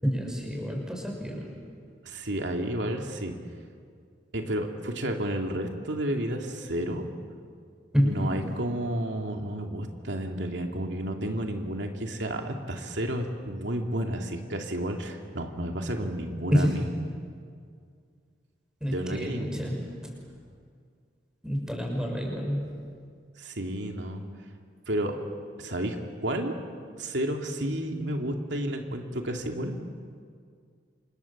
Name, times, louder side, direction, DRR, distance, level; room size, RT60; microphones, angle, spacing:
voice 1, 0.0-1.6 7.9-8.5 16.5-16.9 18.8-20.2 21.4-22.8, equal, 5° right, 0 dB, 6.1 m, -28 dB
voice 2, 2.0-3.4 4.3-7.0 8.0-16.8 18.8-19.7 23.4-24.2 24.9-25.2 25.6-26.5 27.0-29.7, right 1 dB, 90° right, 2 dB, 2.6 m, -31 dB
29.5 x 27.0 x 7.3 m, 2.1 s
head